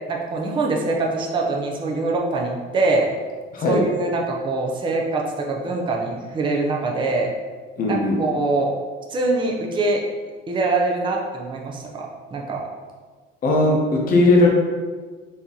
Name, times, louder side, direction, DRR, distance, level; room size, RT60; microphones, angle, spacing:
voice 1, 0.1-3.1 3.6-7.3 7.9-8.7 9.1-10.0 10.5-12.7, right 3 dB, 25° right, 0 dB, 0.5 m, -24 dB
voice 2, 7.8-8.2 13.4-14.5, left 2 dB, 45° left, -1 dB, 0.8 m, -17 dB
4.1 x 2.9 x 3.6 m, 1.4 s
cardioid pair, 145°, 21 cm